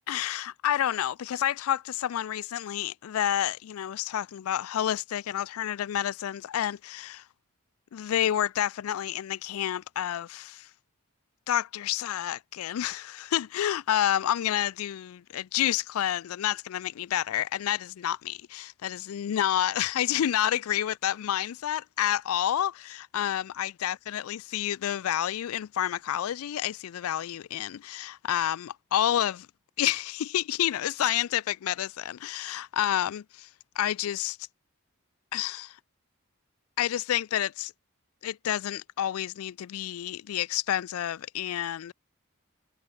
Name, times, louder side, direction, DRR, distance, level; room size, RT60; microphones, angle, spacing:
voice 1, 0.1-7.2 7.9-10.7 11.5-29.5 29.8-33.5 33.8-34.4 35.3-35.8 36.8-37.7 38.2-41.9, left 11 dB, 85° left, 0.3 m, -29 dB
head